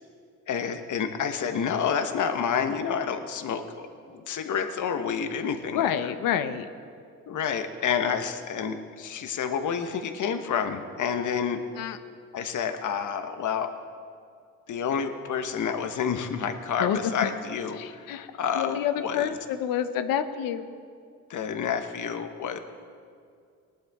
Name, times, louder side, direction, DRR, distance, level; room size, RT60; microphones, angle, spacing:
voice 1, 0.5-6.1 7.3-11.6 12.3-13.7 14.7-19.4 21.3-22.6, left 7 dB, 60° left, 7 dB, 1.2 m, -29 dB
voice 2, 5.7-6.7 11.8-12.0 16.8-17.3 17.8-18.3 18.5-20.7, left 9 dB, 85° left, 10 dB, 0.8 m, -28 dB
19.0 x 11.5 x 3.6 m, 2.3 s
cardioid pair, 75°, 33 cm